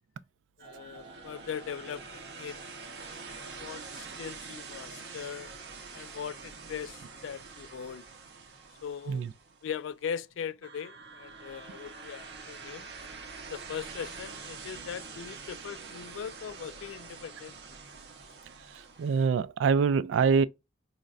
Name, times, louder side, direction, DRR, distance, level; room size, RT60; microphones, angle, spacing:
voice 1, 0.6-2.6 3.0-5.5 5.9-8.0 8.8-9.2 9.6-12.9 13.5-17.6, left 7 dB, 90° left, 0.3 m, -40 dB
sound 1, 0.6-9.8 10.6-19.3, right 4 dB, 60° right, 0.7 m, -45 dB
voice 2, 19.0-20.5, right 5 dB, 85° right, 0.3 m, -24 dB
5.1 x 2.1 x 2.3 m
head